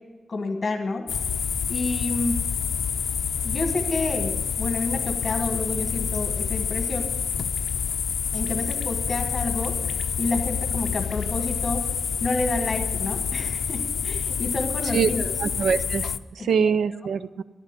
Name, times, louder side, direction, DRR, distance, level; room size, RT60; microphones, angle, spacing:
voice 1, 0.3-1.1 1.7-2.4 3.4-7.1 8.3-9.8 10.2-11.9 12.2-15.3 16.4-16.7, left 2 dB, 30° left, 4 dB, 1.5 m, -29 dB
sound 1, 1.1-16.2, left 7 dB, 70° left, 0.5 m, -27 dB
voice 2, 15.4-17.4, right 6 dB, 85° right, 15 dB, 0.5 m, -24 dB
14.0 x 10.5 x 8.2 m, 1.2 s
wide cardioid pair, 175°, 0 cm